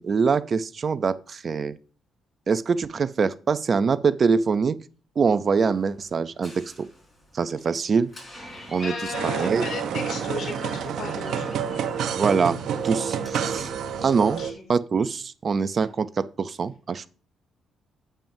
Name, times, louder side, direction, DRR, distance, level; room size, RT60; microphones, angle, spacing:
voice 1, 0.0-1.8 2.5-4.8 5.2-6.9 7.3-8.1 8.7-8.9 9.2-9.6 12.2-12.6 12.8-13.7 14.0-14.4 14.7-17.1, right 5 dB, 45° right, 0.5 m, -24 dB
Door, 5.7-14.4, equal, 15° left, 4.5 m, -44 dB
voice 2, 8.5-11.8 14.4-14.7, left 4 dB, 65° left, 3.5 m, -35 dB
sound 1, 9.1-14.5, right 8 dB, 75° right, 0.9 m, -29 dB
8.9 x 8.7 x 2.7 m
cardioid pair, 90°, 0 cm